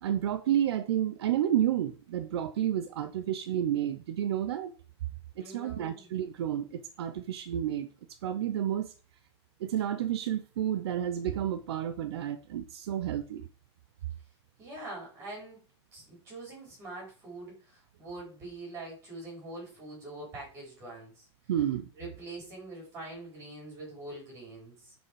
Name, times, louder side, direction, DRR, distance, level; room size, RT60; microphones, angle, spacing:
voice 1, 0.0-4.7 5.4-8.9 9.6-13.5 21.5-21.9, right 10 dB, 65° right, 0.8 m, -30 dB
voice 2, 5.4-6.1 14.6-15.6 15.9-21.3 22.0-24.9, right 2 dB, 20° right, 5.0 m, -44 dB
9.5 x 5.4 x 4.8 m
supercardioid pair, 180°, 15 cm